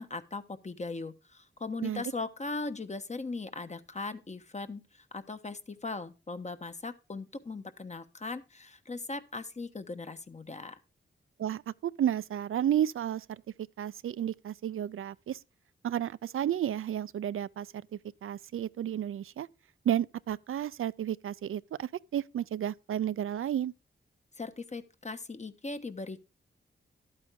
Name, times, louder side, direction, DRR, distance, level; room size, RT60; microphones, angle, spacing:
voice 1, 0.0-10.8 24.4-26.3, left 3 dB, 35° left, 1.1 m, -39 dB
voice 2, 11.4-13.4 13.8-15.4 15.8-19.5 19.8-23.7, right 10 dB, 85° right, 0.4 m, -32 dB
12.5 x 8.8 x 3.7 m
wide cardioid pair, 95°, 21 cm